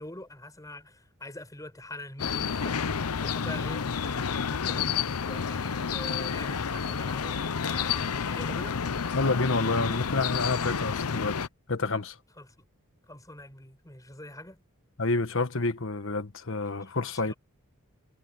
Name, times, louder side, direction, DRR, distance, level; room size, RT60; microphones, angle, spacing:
voice 1, 0.0-5.0 5.3-8.8 12.4-12.5 13.1-14.6 16.8-17.3, left 1 dB, 15° left, 6.0 m, -44 dB
sound 1, 2.2-11.5, left 6 dB, 90° left, 0.7 m, -30 dB
voice 2, 9.1-11.4 11.7-12.2 15.0-17.3, left 3 dB, 60° left, 1.5 m, -28 dB
head